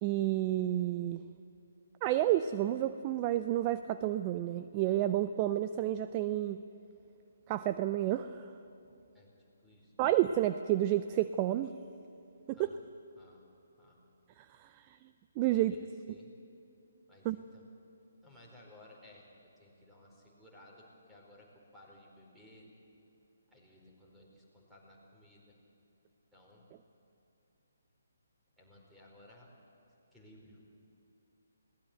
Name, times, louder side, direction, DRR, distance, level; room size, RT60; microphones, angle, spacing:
voice 1, 0.0-1.2 2.0-6.6 7.5-8.5 10.0-11.7 12.5-12.6 14.6-15.0 15.4-15.7 17.2-17.4, right 13 dB, 25° right, 11 dB, 0.5 m, -30 dB
voice 2, 9.6-10.2 12.5-12.8 13.2-13.4 13.8-14.0 15.5-16.3 17.1-17.7 18.2-22.7 23.5-25.6 26.3-26.6 28.6-29.5 30.1-30.6, left 1 dB, 5° right, -3 dB, 4.6 m, -58 dB
22.0 x 18.0 x 8.0 m, 2.8 s
figure-of-eight pair, 140°, 0 cm